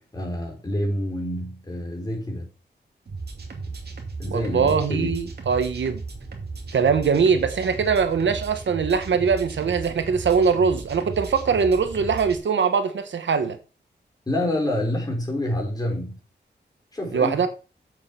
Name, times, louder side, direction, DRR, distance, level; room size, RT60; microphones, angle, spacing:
voice 1, 0.1-2.5 4.2-5.2 14.3-16.2 16.9-17.3, left 1 dB, 20° left, 4.5 m, -27 dB
sound 1, 3.1-12.4, right 3 dB, 60° right, 2.5 m, -36 dB
voice 2, 4.3-6.0 6.7-13.6 17.1-17.5, right 6 dB, 90° right, 1.2 m, -22 dB
8.1 x 7.4 x 5.9 m
wide cardioid pair, 140°, 19 cm